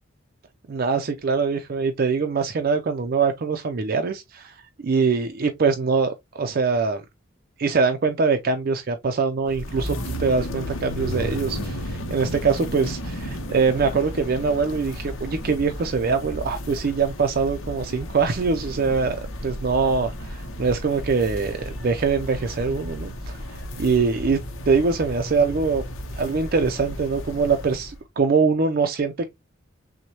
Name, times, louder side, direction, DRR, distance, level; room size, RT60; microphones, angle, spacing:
voice 1, 0.7-7.0 7.6-24.4 24.7-25.8 26.2-29.3, right 4 dB, 50° right, 0.4 m, -23 dB
sound 1, 9.4-28.0, equal, 85° left, 0.8 m, -33 dB
6.0 x 2.1 x 2.9 m
head